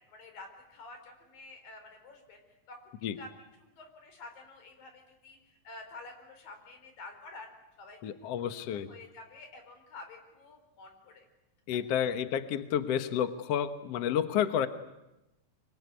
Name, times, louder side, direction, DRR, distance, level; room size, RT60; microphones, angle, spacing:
voice 1, 0.1-2.4 2.7-3.3 3.6-7.5 7.8-8.0 8.4-11.3, left 3 dB, 90° left, 5 dB, 6.1 m, -49 dB
voice 2, 8.0-8.9 11.7-14.7, left 9 dB, 60° left, 10 dB, 1.9 m, -30 dB
24.5 x 24.0 x 9.7 m, 0.96 s
omnidirectional pair, 3.9 m